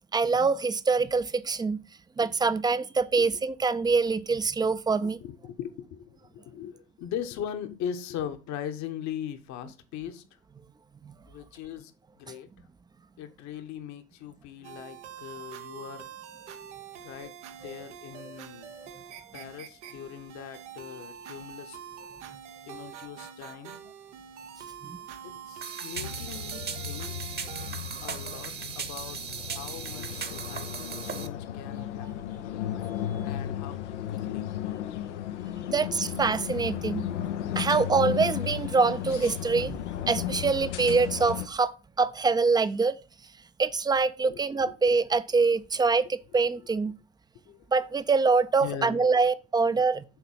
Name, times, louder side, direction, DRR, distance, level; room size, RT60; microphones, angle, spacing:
voice 1, 0.1-1.8 2.2-5.2 11.0-11.1 12.3-12.4 24.8-25.0 35.7-37.0 37.6-39.8 40.1-41.7 42.0-43.0 43.6-46.9 47.7-50.0, right 4 dB, 10° right, 0.4 m, -25 dB
voice 2, 5.0-10.2 11.3-12.5 13.2-16.1 17.0-17.3 17.6-18.7 19.3-21.8 22.6-23.8 25.2-27.2 28.0-32.4 33.2-33.8 34.1-34.5 35.2-36.0 44.3-44.8 46.8-46.9 47.3-47.7 48.6-49.0, left 9 dB, 55° left, 1.1 m, -40 dB
sound 1, 14.6-27.7, right 8 dB, 85° right, 0.9 m, -45 dB
sound 2, 25.6-31.3, right 7 dB, 30° right, 1.0 m, -37 dB
sound 3, 25.9-41.5, left 11 dB, 85° left, 0.6 m, -35 dB
7.0 x 4.0 x 5.5 m
hypercardioid pair, 80°, 34 cm